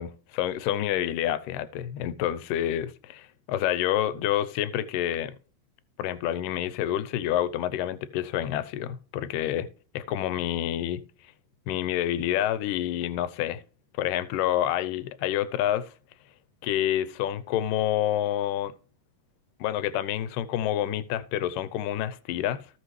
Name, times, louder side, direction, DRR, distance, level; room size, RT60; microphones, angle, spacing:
voice 1, 0.0-5.4 6.0-9.7 9.9-11.0 11.7-13.6 14.0-15.9 16.6-18.7 19.6-22.6, left 11 dB, 80° left, 2.2 m, -28 dB
15.5 x 5.8 x 3.2 m
omnidirectional pair, 4.1 m